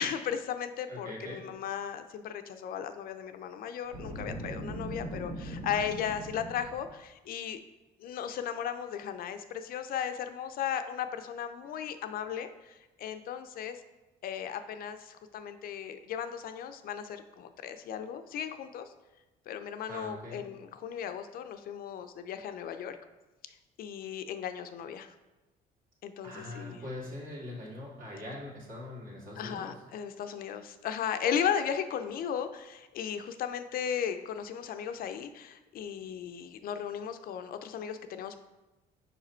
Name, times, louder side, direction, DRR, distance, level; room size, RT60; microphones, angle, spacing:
voice 1, 0.0-7.6 8.0-13.8 14.2-18.9 19.5-23.0 23.8-25.1 26.0-26.8 29.4-38.4, left 8 dB, 60° left, 9 dB, 0.5 m, -36 dB
voice 2, 0.9-1.4 19.9-20.4 26.2-29.8, left 1 dB, 55° right, -3 dB, 2.0 m, -42 dB
Boom, 3.8-7.0, right 1 dB, 70° right, 1.5 m, -40 dB
5.0 x 4.9 x 4.3 m, 1.1 s
cardioid pair, 110°, 17 cm